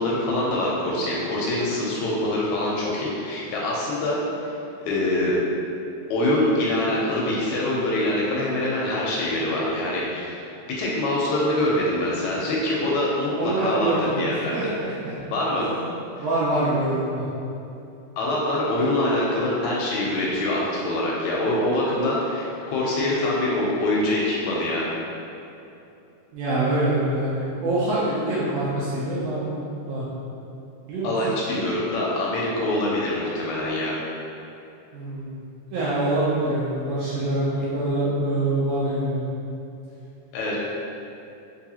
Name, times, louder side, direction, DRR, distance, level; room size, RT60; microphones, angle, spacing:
voice 1, 0.0-4.5 4.9-5.4 6.1-10.4 10.7-14.7 15.3-15.6 18.2-24.9 31.0-34.0 40.3-40.6, left 1 dB, 80° left, -5 dB, 1.7 m, -24 dB
voice 2, 13.4-15.2 15.6-15.7 16.2-17.3 26.3-30.1 30.9-31.1 34.9-35.4 35.7-39.3, right 1 dB, 80° right, -9 dB, 1.5 m, -25 dB
4.7 x 2.4 x 2.7 m, 2.8 s
omnidirectional pair, 3.5 m